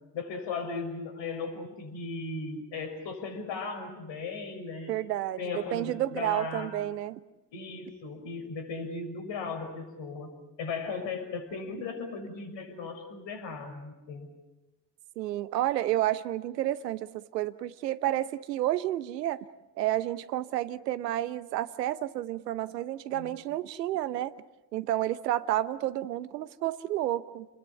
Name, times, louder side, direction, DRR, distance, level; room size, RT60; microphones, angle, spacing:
voice 1, 0.1-4.9 5.4-6.7 7.5-10.3 10.6-14.3 23.1-23.4, left 4 dB, 60° left, 7 dB, 6.5 m, -37 dB
voice 2, 4.9-7.2 15.2-19.4 19.8-24.3 24.7-27.5, right 14 dB, 80° right, 16 dB, 1.0 m, -30 dB
30.0 x 21.0 x 7.2 m, 1.1 s
figure-of-eight pair, 50°, 49 cm